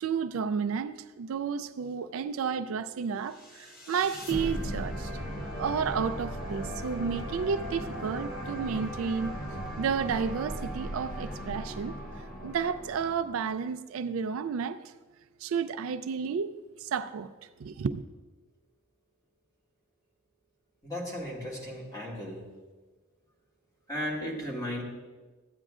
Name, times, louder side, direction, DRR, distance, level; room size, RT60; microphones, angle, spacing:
voice 1, 0.0-5.1 5.6-9.3 9.8-14.9 15.4-16.5 16.8-18.0, right 6 dB, 70° right, 0.3 m, -32 dB
sound 1, 3.4-13.6, equal, 45° left, 0.9 m, -37 dB
voice 2, 20.8-22.4 23.9-24.8, equal, 20° left, 2.0 m, -35 dB
14.0 x 8.9 x 2.4 m
head